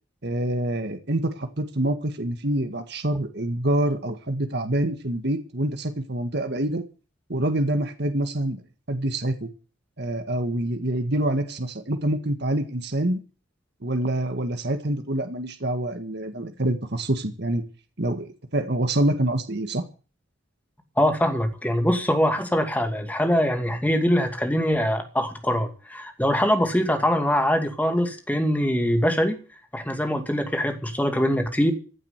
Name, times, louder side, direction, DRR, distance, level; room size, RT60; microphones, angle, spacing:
voice 1, 0.2-6.8 7.3-8.6 8.9-9.5 10.0-13.2 13.8-17.6 18.0-19.8, right 1 dB, 55° right, 7 dB, 1.8 m, -26 dB
voice 2, 21.0-29.4 29.7-31.7, equal, 10° left, 6 dB, 2.4 m, -23 dB
16.0 x 7.8 x 9.5 m, 0.36 s
head